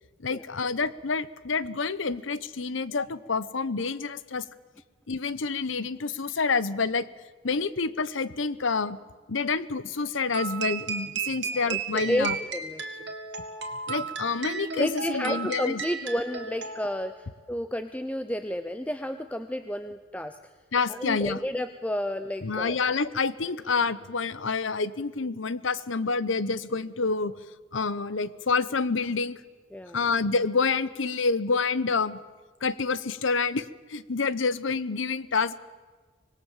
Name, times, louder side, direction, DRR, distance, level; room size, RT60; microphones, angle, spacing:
voice 1, 0.2-4.4 5.1-7.1 7.4-9.0 9.3-12.4 13.9-15.8 20.7-21.4 22.4-27.3 27.7-29.4 29.9-32.2 32.6-35.6, left 4 dB, 85° left, 17 dB, 0.9 m, -28 dB
sound 1, 10.3-17.2, right 6 dB, 65° right, 2.0 m, -34 dB
voice 2, 11.5-13.1 14.8-20.5 20.9-22.7 29.7-30.0, equal, 5° left, 9 dB, 0.6 m, -32 dB
25.5 x 19.5 x 7.3 m, 1.4 s
head